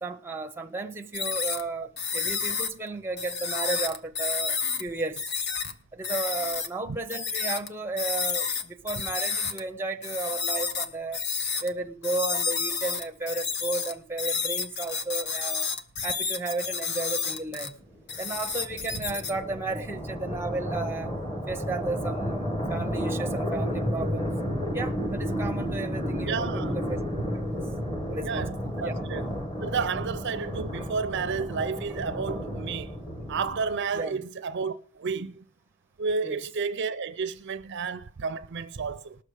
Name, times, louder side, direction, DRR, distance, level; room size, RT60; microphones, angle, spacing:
voice 1, 0.0-5.3 5.9-11.3 11.6-15.7 16.0-17.8 18.2-21.2 21.5-24.3 24.7-27.0 27.3-27.7 28.1-28.5 28.8-28.9 33.9-34.3 36.2-36.4, right 3 dB, 10° right, 0.6 m, -34 dB
sound 1, 1.1-1.6 2.0-2.7 3.2-4.8 5.2-5.7 6.0-6.7 7.1-7.7 8.0-9.6 10.0-11.7 12.0-17.7 18.1-19.3, left 5 dB, 50° left, 0.9 m, -30 dB
sound 2, 17.6-33.9, equal, 20° left, 1.1 m, -32 dB
voice 2, 26.3-26.8 28.2-29.2 29.6-32.9 33.3-35.4 36.0-39.2, right 5 dB, 55° right, 0.5 m, -31 dB
19.0 x 6.6 x 4.8 m
head